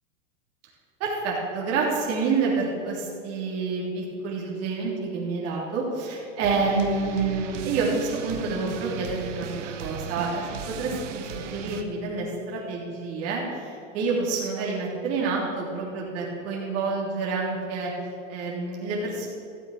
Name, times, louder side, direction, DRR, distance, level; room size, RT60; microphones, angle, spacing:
voice 1, 1.0-17.9 18.3-19.3, right 4 dB, 40° right, -3 dB, 3.4 m, -28 dB
sound 1, 6.4-11.8, right 8 dB, 70° right, 1.3 m, -36 dB
14.0 x 8.0 x 6.6 m, 2.6 s
hypercardioid pair, 120°, 38 cm